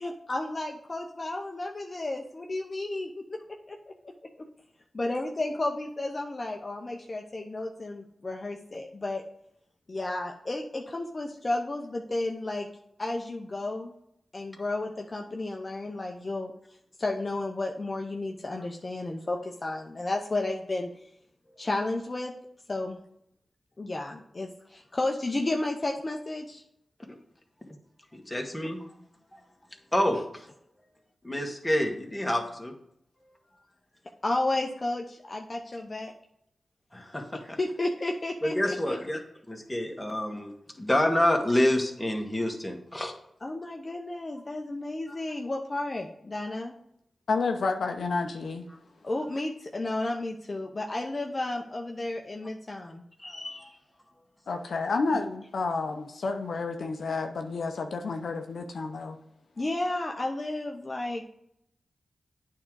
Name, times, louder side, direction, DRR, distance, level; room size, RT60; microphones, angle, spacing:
voice 1, 0.0-3.1 3.7-3.9 5.0-9.2 9.9-12.7 13.0-13.9 14.3-16.5 17.0-20.9 21.6-22.3 22.7-23.0 23.8-26.6 34.2-36.1 37.4-39.0 43.4-46.7 49.0-53.0 59.6-61.3, left 2 dB, 40° left, 2 dB, 0.8 m, -32 dB
voice 2, 28.1-28.9 29.3-29.4 29.9-30.5 31.2-32.7 36.9-37.6 38.4-39.2 39.5-43.1 53.2-53.7, left 1 dB, 15° left, 2 dB, 1.6 m, -28 dB
voice 3, 47.3-48.7 54.5-59.2, left 4 dB, 80° left, 5 dB, 0.6 m, -30 dB
8.8 x 3.8 x 4.7 m, 0.76 s
cardioid pair, 50°, 0 cm